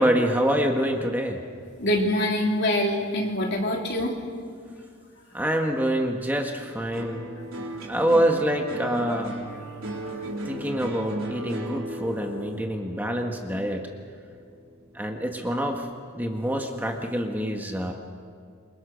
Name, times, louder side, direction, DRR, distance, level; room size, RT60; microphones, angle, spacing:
voice 1, 0.0-1.4 5.3-7.2 7.9-9.3 10.4-13.8 14.9-15.9 16.1-17.9, equal, 10° right, 2 dB, 1.5 m, -26 dB
voice 2, 1.8-4.1, left 1 dB, 55° left, -1 dB, 3.6 m, -24 dB
sound 1, 6.9-15.4 15.7-16.4, right 1 dB, 80° right, 4.2 m, -37 dB
28.0 x 23.5 x 6.4 m, 2.2 s
head